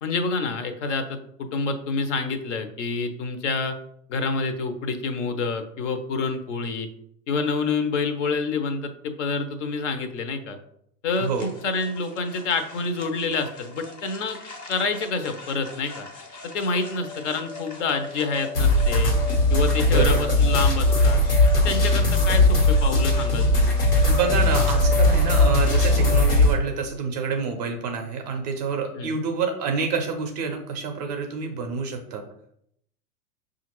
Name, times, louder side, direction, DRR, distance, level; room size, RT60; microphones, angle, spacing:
voice 1, 0.0-3.7 4.1-6.9 7.3-10.6 11.0-14.4 14.7-16.1 16.4-19.1 19.5-21.2 21.6-23.7 29.0-29.1, left 4 dB, 50° left, 8 dB, 0.7 m, -27 dB
sound 1, 11.1-26.2, left 5 dB, 20° left, 0.6 m, -35 dB
voice 2, 11.2-11.5 19.9-20.4 24.0-32.2, right 5 dB, 30° right, 4 dB, 0.5 m, -27 dB
sound 2, 18.5-26.5, left 1 dB, 85° left, 1.3 m, -19 dB
5.6 x 2.5 x 3.0 m, 0.70 s
figure-of-eight pair, 100°, 46 cm